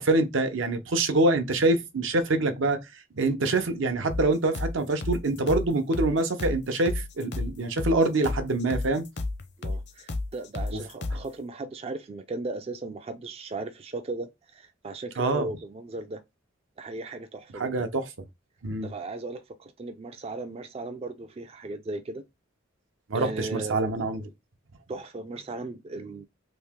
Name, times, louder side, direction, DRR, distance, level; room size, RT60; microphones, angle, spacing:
voice 1, 0.0-2.8 3.2-9.1 10.7-10.8 15.2-15.5 17.5-18.1 18.6-18.9 23.1-24.2, right 2 dB, 75° right, 0.7 m, -25 dB
sound 1, 4.1-11.3, left 2 dB, 60° left, 0.6 m, -33 dB
voice 2, 9.6-16.2 16.8-17.9 18.8-22.2 23.1-23.8 24.9-26.2, right 2 dB, 30° right, 0.3 m, -37 dB
3.0 x 2.8 x 3.5 m
head